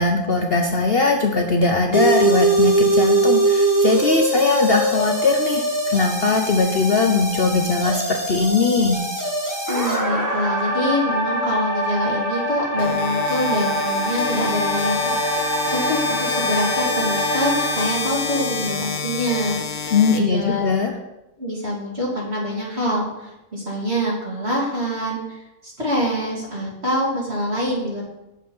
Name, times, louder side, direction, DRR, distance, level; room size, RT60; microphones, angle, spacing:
voice 1, 0.0-9.0 19.9-20.9, left 4 dB, 45° left, 3 dB, 1.0 m, -20 dB
sound 1, 1.9-17.9, right 1 dB, 15° right, 1.5 m, -22 dB
voice 2, 9.7-20.6 21.4-28.0, equal, 45° right, -4 dB, 3.3 m, -25 dB
sound 2, 12.8-20.8, left 5 dB, 90° left, 1.4 m, -28 dB
8.9 x 7.5 x 5.5 m, 0.94 s
omnidirectional pair, 1.5 m